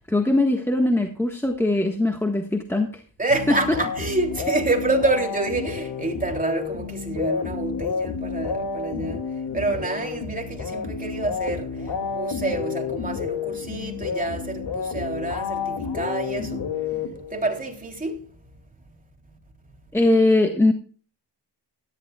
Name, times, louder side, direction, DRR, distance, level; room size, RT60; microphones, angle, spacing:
voice 1, 0.1-3.0 19.9-20.7, left 2 dB, 5° left, 1.5 m, -21 dB
voice 2, 3.2-17.0 17.3-18.3, right 2 dB, 20° right, 3.3 m, -28 dB
sound 1, 3.3-17.6, left 6 dB, 85° left, 2.5 m, -30 dB
17.5 x 14.0 x 2.4 m
wide cardioid pair, 155°, 42 cm